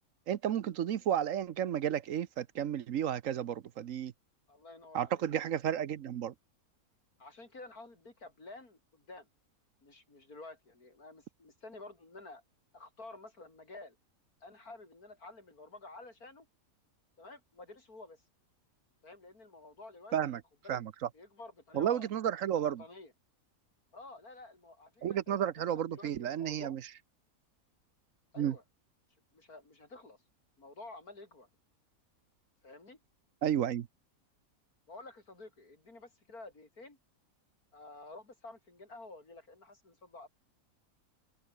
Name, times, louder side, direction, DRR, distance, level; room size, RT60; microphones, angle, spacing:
voice 1, 0.3-4.1 4.9-6.3 20.1-20.4 20.7-20.9 21.7-22.8 25.0-26.8 28.4-28.5 33.4-33.9, right 10 dB, 65° right, 1.1 m, -32 dB
voice 2, 4.5-5.4 7.2-9.3 9.8-12.4 12.7-14.0 14.4-16.5 17.2-18.2 19.0-20.4 20.6-20.8 21.1-22.1 22.6-23.1 23.9-26.8 28.3-28.6 29.3-30.2 30.6-31.5 32.6-33.0 34.9-37.0 37.7-40.3, left 2 dB, 85° left, 5.6 m, -51 dB
omnidirectional pair, 1.5 m